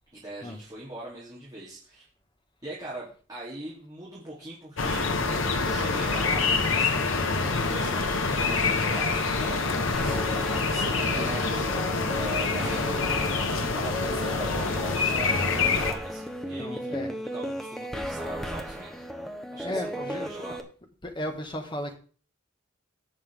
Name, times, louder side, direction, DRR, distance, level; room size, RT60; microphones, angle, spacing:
voice 1, 0.1-2.0 2.6-7.1 7.4-8.1 8.3-12.9 13.6-19.0 19.5-20.6, right 2 dB, 20° right, 3.3 m, -41 dB
sound 1, 4.8-15.9, left 4 dB, 85° left, 1.4 m, -26 dB
sound 2, 9.9-20.6, equal, ahead, 1.2 m, -35 dB
voice 2, 11.2-11.6 16.6-17.1 19.6-20.3 21.0-22.0, left 1 dB, 25° left, 1.8 m, -35 dB
18.0 x 6.3 x 3.7 m
head